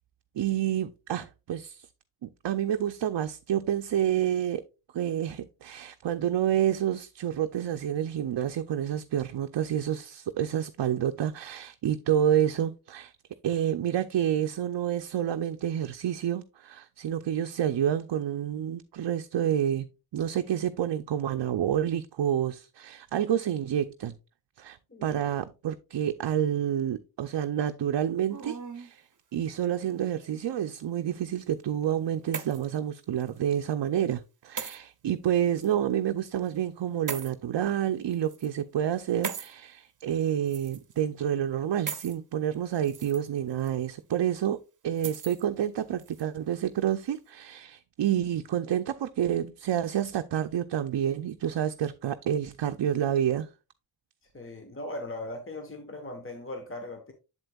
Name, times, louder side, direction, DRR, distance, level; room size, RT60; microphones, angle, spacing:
voice 1, 0.3-1.9 2.2-4.6 4.9-13.1 13.4-24.1 24.6-29.0 29.3-53.5, right 10 dB, 70° right, 0.5 m, -29 dB
sound 1, 28.3-28.9 29.9-30.6 31.8-32.8 33.2-33.4 34.6-34.8 35.6-35.7 37.1-37.3 38.1-38.5 39.2-39.5 40.5-41.0 41.9-42.2 42.7-43.2 43.6-43.7 45.0-45.4 46.0-46.2, right 6 dB, 45° right, 0.7 m, -38 dB
voice 2, 54.3-57.1, left 1 dB, 30° left, 1.1 m, -39 dB
7.7 x 7.5 x 2.3 m
wide cardioid pair, 55°, 43 cm